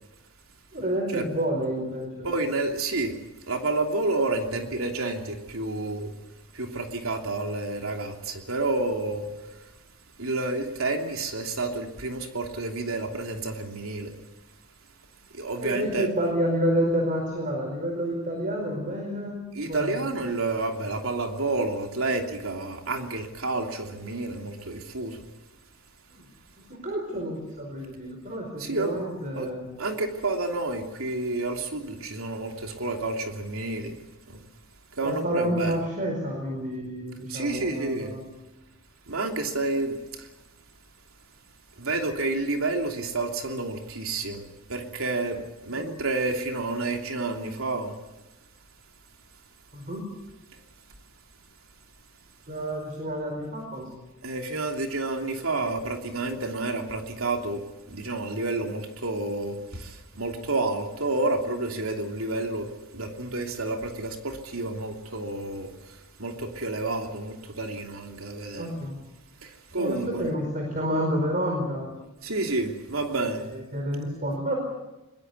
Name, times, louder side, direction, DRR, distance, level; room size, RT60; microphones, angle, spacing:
voice 1, 0.7-2.3 15.6-20.0 26.1-26.2 26.7-29.7 35.0-38.2 45.7-45.8 49.7-50.0 52.5-53.9 68.6-68.9 69.8-71.9 73.5-74.5, equal, 40° right, 1 dB, 4.7 m, -29 dB
voice 2, 2.2-3.2 3.5-6.1 6.5-9.7 10.2-14.2 15.3-16.1 19.5-25.2 28.6-29.0 29.3-29.5 29.8-34.0 34.3-34.4 34.9-35.8 37.3-38.1 39.1-40.3 41.8-48.0 54.2-68.7 69.4-70.2 72.2-73.4, right 2 dB, 85° right, 3 dB, 3.0 m, -30 dB
22.0 x 21.0 x 8.3 m, 1.0 s
head